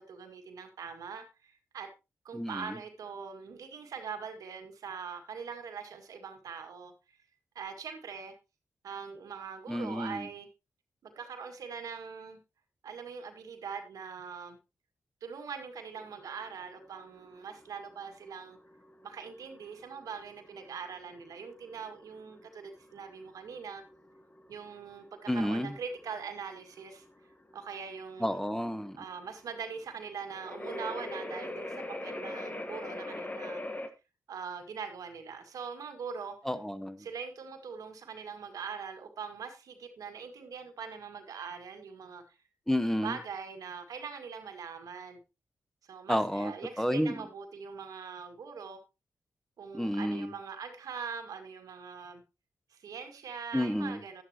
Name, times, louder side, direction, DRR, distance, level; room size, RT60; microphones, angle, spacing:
voice 1, 0.0-1.9 2.2-6.9 7.6-8.3 8.8-10.5 11.0-12.4 12.8-14.6 15.2-18.6 19.0-23.8 24.5-27.0 27.5-28.4 28.9-33.6 34.3-36.4 37.0-42.2 43.0-45.2 45.9-48.8 49.6-52.2 52.7-54.2, right 6 dB, 85° right, 5 dB, 2.0 m, -42 dB
voice 2, 2.3-2.7 9.7-10.3 25.3-25.8 28.2-29.0 36.4-37.1 42.7-43.2 46.1-47.2 49.7-50.3 53.5-54.0, equal, 5° left, 11 dB, 1.1 m, -31 dB
sound 1, 16.0-33.9, left 1 dB, 25° left, 1.5 m, -43 dB
11.5 x 10.5 x 3.0 m, 0.27 s
cardioid pair, 50°, 6 cm